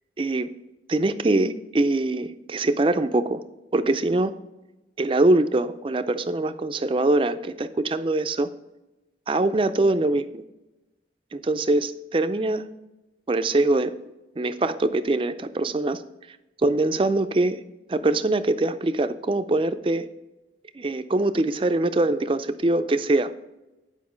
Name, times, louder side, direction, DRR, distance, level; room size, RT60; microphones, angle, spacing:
voice 1, 0.2-0.5 0.9-3.4 3.7-4.4 5.0-8.5 9.3-10.4 11.3-12.7 13.3-14.0 14.4-16.0 16.6-17.6 17.9-20.1 20.8-23.3, right 2 dB, 30° right, 10 dB, 0.4 m, -23 dB
9.4 x 5.1 x 5.0 m, 1.0 s
head